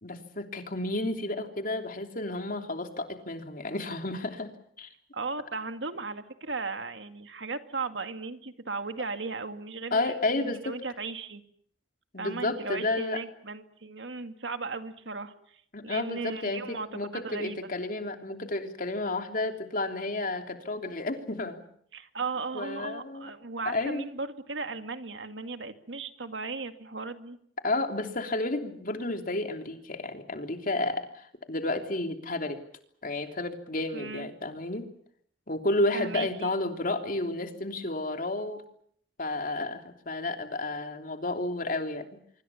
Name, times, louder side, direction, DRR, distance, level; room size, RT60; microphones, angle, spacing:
voice 1, 0.0-4.5 4.8-4.9 9.9-10.7 12.1-13.2 15.7-21.6 22.5-23.3 23.6-24.1 27.6-32.6 33.0-34.9 35.5-38.6 39.2-42.1, left 2 dB, 50° left, 5 dB, 3.1 m, -31 dB
voice 2, 5.1-10.0 10.4-11.4 12.2-15.3 15.8-17.6 21.9-27.4 33.9-34.3 35.9-36.5, right 4 dB, 85° right, 8 dB, 2.1 m, -36 dB
25.5 x 24.5 x 7.2 m, 0.64 s
head